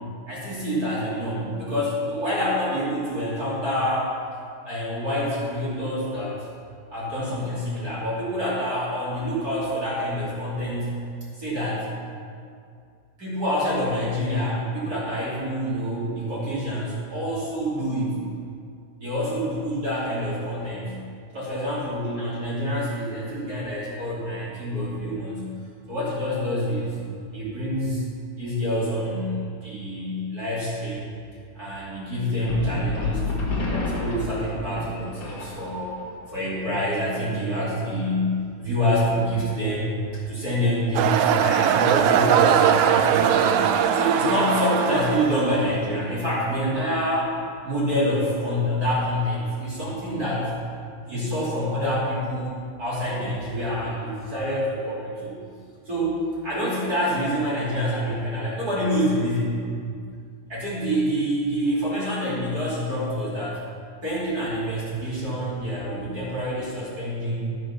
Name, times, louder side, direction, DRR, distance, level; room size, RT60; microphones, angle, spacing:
voice 1, 0.3-4.1 4.6-6.4 6.9-11.0 11.4-11.9 13.2-18.2 19.0-21.0 21.3-25.5 25.9-27.0 27.3-28.1 28.4-31.1 31.5-36.0 36.3-40.0 40.3-47.3 47.6-50.5 51.0-55.4 55.9-56.2 56.4-59.6 60.5-63.6 64.0-67.5, equal, 25° right, -8 dB, 3.0 m, -27 dB
sound 1, 32.5-36.0, left 2 dB, 40° left, 1.5 m, -29 dB
sound 2, 41.0-45.8, right 8 dB, 85° right, 2.2 m, -20 dB
14.0 x 6.4 x 6.0 m, 2.3 s
omnidirectional pair, 4.7 m